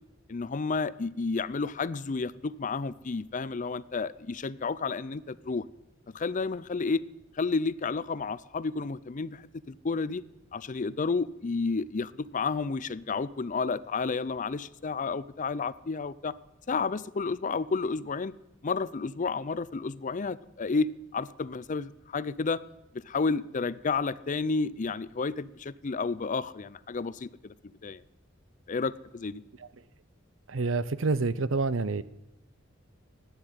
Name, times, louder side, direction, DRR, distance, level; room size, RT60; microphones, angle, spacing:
voice 1, 0.3-5.6 6.1-7.0 7.4-10.2 10.5-16.3 16.7-18.3 18.6-22.6 23.1-27.5 27.8-28.0 28.7-29.4, left 4 dB, 40° left, 18 dB, 0.5 m, -31 dB
voice 2, 30.5-32.0, right 3 dB, 75° right, 16 dB, 0.8 m, -27 dB
15.0 x 9.8 x 9.0 m, 0.93 s
head